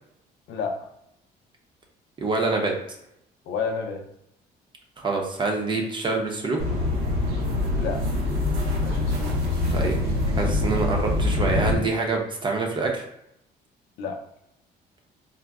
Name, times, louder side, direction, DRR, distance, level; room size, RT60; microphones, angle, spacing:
voice 1, 0.5-0.9 3.5-4.1 7.8-8.0 8.8-9.4 14.0-14.2, left 5 dB, 80° left, 3 dB, 0.5 m, -30 dB
voice 2, 2.2-2.7 5.0-6.6 9.7-10.0 10.3-13.0, right 3 dB, 30° right, 1 dB, 0.6 m, -26 dB
sound 1, 6.6-11.7, left 2 dB, 80° right, 0.8 m, -24 dB
3.7 x 2.1 x 2.3 m, 0.79 s
cardioid pair, 110°, 17 cm